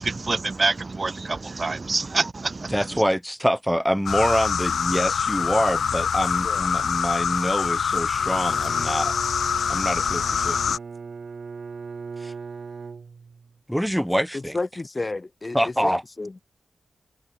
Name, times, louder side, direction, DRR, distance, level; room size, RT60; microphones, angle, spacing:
voice 1, 0.0-3.0, right 3 dB, 40° right, 1.2 m, -26 dB
voice 2, 2.7-9.1 9.7-10.8 12.2-12.3 13.7-14.5 15.5-16.0, equal, ahead, 0.6 m, -25 dB
sound 1, 4.1-10.8, left 7 dB, 85° left, 0.7 m, -25 dB
Bowed string instrument, 8.1-13.6, right 5 dB, 60° right, 1.3 m, -39 dB
voice 3, 14.3-16.4, left 2 dB, 30° left, 3.8 m, -32 dB
cardioid pair, 75°, 0 cm